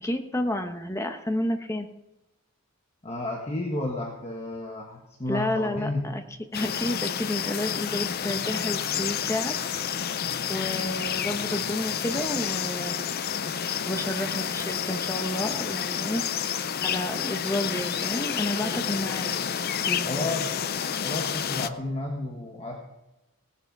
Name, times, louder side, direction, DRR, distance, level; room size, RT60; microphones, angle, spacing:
voice 1, 0.0-1.9 5.3-6.2 6.5-9.5 10.5-13.1 13.9-16.2 16.8-19.3 19.8-20.3, left 1 dB, 15° left, 6 dB, 1.0 m, -30 dB
voice 2, 3.0-6.1 20.0-20.6 21.0-22.8, left 2 dB, 30° left, 0 dB, 1.5 m, -32 dB
sound 1, 6.3-6.4 7.5-9.6 10.2-12.2 13.4-14.8 15.5-15.6 16.7-16.8, left 1 dB, 75° left, 2.6 m, -47 dB
sound 2, 6.5-21.7, left 8 dB, 45° left, 0.5 m, -30 dB
17.5 x 10.5 x 4.8 m, 0.95 s
head